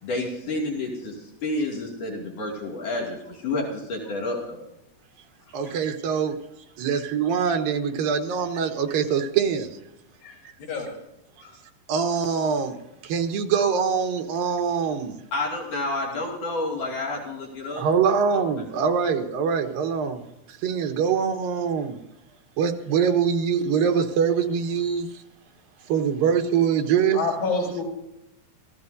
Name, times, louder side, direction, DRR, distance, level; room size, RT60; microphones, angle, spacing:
voice 1, 0.0-4.6 15.3-17.9 18.3-18.4, left 2 dB, 65° left, 3.9 m, -30 dB
voice 2, 5.5-6.4 6.8-9.7 11.9-12.8 13.0-15.2 17.8-20.2 20.5-22.0 22.6-25.2 25.9-27.2, right 6 dB, 85° right, 3.1 m, -23 dB
voice 3, 10.2-10.9 11.4-11.5 27.1-27.8, left 3 dB, 85° left, 5.4 m, -29 dB
27.0 x 15.5 x 2.7 m
omnidirectional pair, 3.9 m